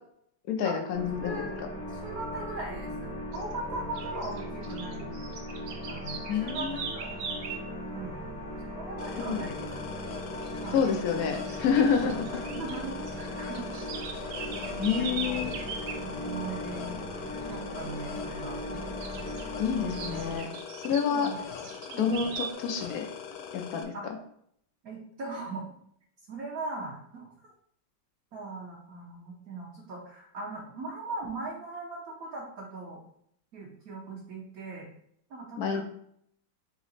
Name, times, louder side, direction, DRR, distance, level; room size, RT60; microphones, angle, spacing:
voice 1, 0.5-1.5 6.3-6.8 9.2-9.5 10.7-12.3 14.8-15.5 19.6-20.5 20.8-21.3 22.0-23.1 23.5-24.2 35.6-35.8, left 6 dB, 70° left, 3 dB, 0.9 m, -28 dB
sound 1, 0.9-20.4, equal, 30° right, 0.7 m, -38 dB
voice 2, 1.2-1.6 2.0-5.2 5.9-7.2 7.9-8.2 8.7-9.7 10.6-10.8 12.0-13.6 14.6-15.4 15.9-17.1 17.4-18.6 20.5-20.6 21.1-21.4 21.9-22.2 23.9-24.1 24.8-25.6 26.3-27.3 28.3-33.0 33.5-34.9 35.3-35.8, right 3 dB, 55° right, -4 dB, 1.2 m, -39 dB
sound 2, 3.3-3.5 3.9-7.7 10.2-10.5 10.7-10.9 11.3-12.8 13.0-16.0 19.0-19.5 19.9-22.5, right 6 dB, 80° right, 1.4 m, -40 dB
sound 3, 9.0-23.8, left 7 dB, 90° left, 1.5 m, -42 dB
3.9 x 3.1 x 4.1 m, 0.68 s
omnidirectional pair, 2.2 m